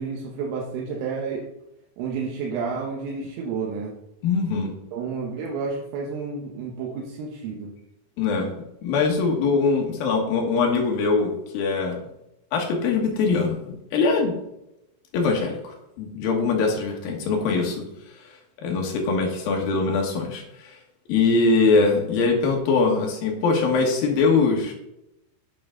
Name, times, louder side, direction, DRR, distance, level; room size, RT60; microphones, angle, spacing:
voice 1, 0.0-1.5 2.0-4.0 4.9-7.7 8.4-8.5, right 5 dB, 90° right, -1 dB, 3.7 m, -30 dB
voice 2, 4.2-4.7 8.2-8.5 8.8-12.0 12.5-14.3 15.1-17.8 18.6-20.8 21.1-24.7, left 4 dB, 65° left, 1 dB, 2.5 m, -22 dB
8.8 x 7.7 x 3.7 m, 0.87 s
omnidirectional pair, 5.6 m